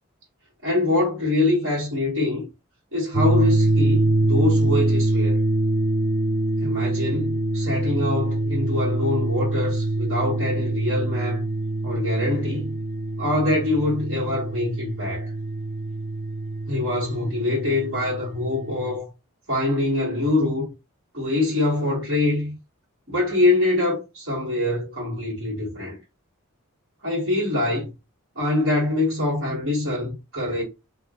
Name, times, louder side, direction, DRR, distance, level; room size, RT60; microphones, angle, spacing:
voice 1, 0.6-2.5 2.9-5.4 6.6-11.4 11.8-12.8 13.2-15.3 16.7-19.1 19.5-20.7 21.1-22.5 23.1-26.0 27.0-27.9 28.4-30.6, left 2 dB, 65° right, 1.9 m, -24 dB
sound 1, 3.1-19.0, right 2 dB, 35° right, 0.3 m, -24 dB
3.6 x 2.8 x 2.5 m
head